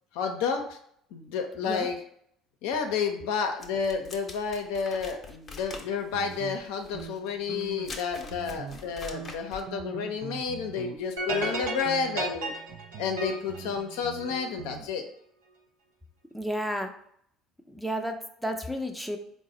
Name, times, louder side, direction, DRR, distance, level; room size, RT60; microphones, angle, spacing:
voice 1, 0.1-0.8 1.1-2.0 2.6-12.5 13.0-15.0, left 6 dB, 80° left, 4 dB, 0.5 m, -31 dB
sound 1, 3.6-9.7, left 3 dB, 35° left, 0.7 m, -44 dB
sound 2, 6.1-8.0 8.3-8.9 9.1-11.0 11.3-11.6 11.8-14.9, right 8 dB, 70° right, 0.3 m, -43 dB
sound 3, 11.2-14.5, right 2 dB, 90° right, 0.7 m, -33 dB
voice 2, 16.3-16.9 17.7-19.2, equal, ahead, 4 dB, 0.5 m, -32 dB
3.9 x 2.0 x 3.7 m, 0.67 s
hypercardioid pair, 70°, 0 cm